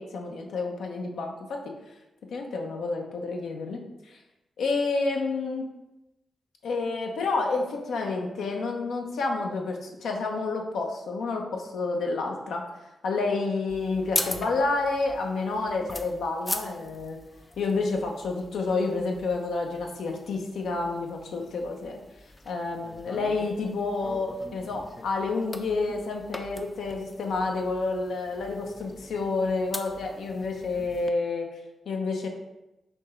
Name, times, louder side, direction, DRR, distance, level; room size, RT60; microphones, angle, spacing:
voice 1, 0.0-1.7 2.3-4.2 4.6-5.7 6.6-12.6 13.0-17.2 17.6-22.0 22.5-31.5 31.9-32.3, left 3 dB, 75° left, 2 dB, 0.6 m, -29 dB
sound 1, 13.7-31.1, left 2 dB, 25° left, 0.5 m, -40 dB
4.4 x 2.9 x 3.2 m, 0.94 s
supercardioid pair, 40°, 0 cm